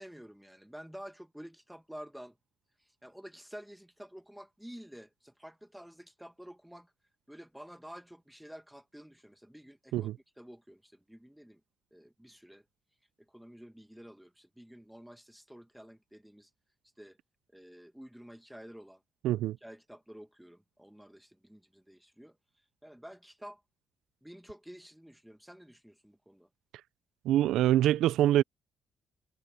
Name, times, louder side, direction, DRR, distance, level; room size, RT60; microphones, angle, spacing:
voice 1, 0.0-2.4 2.8-6.9 7.3-10.1 10.4-11.6 11.9-12.6 13.3-16.5 17.0-17.2 17.5-19.0 19.6-23.6 24.2-26.5, equal, 5° right, 1.7 m, -50 dB
voice 2, 19.2-19.6 27.3-28.4, right 13 dB, 85° right, 0.4 m, -25 dB
cardioid pair, 90°, 0 cm